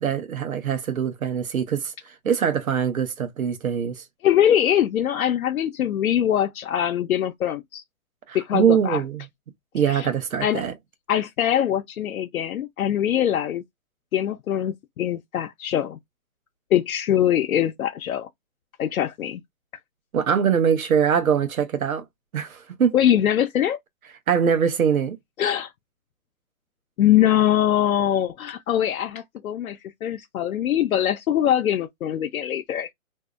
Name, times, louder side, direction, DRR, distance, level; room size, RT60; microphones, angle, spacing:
voice 1, 0.0-4.0 8.3-9.2 9.7-10.7 20.1-22.0 22.3-22.9 24.3-25.2, right 7 dB, 85° right, 0.8 m, -23 dB
voice 2, 4.2-7.8 8.3-9.0 9.9-10.1 10.4-10.6 11.1-13.6 14.1-16.0 16.7-18.3 18.8-19.4 22.9-23.8 25.4-25.7 27.0-32.9, left 11 dB, 90° left, 0.5 m, -22 dB
2.7 x 2.0 x 2.3 m
hypercardioid pair, 180°, 41 cm